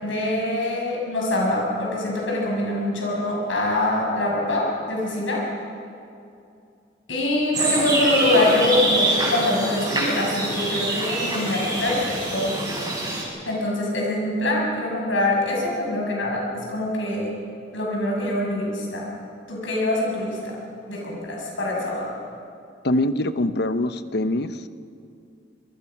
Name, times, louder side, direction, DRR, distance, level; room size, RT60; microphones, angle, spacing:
voice 1, 0.0-5.4 7.1-12.6 13.4-17.3 17.7-19.1 19.5-20.6 20.9-22.1, left 1 dB, 85° left, -2 dB, 6.7 m, -24 dB
sound 1, 7.5-13.2, right 2 dB, 20° right, 6.5 m, -25 dB
voice 2, 22.8-24.7, left 1 dB, 60° left, 12 dB, 0.9 m, -24 dB
27.0 x 23.0 x 6.0 m, 2.5 s
head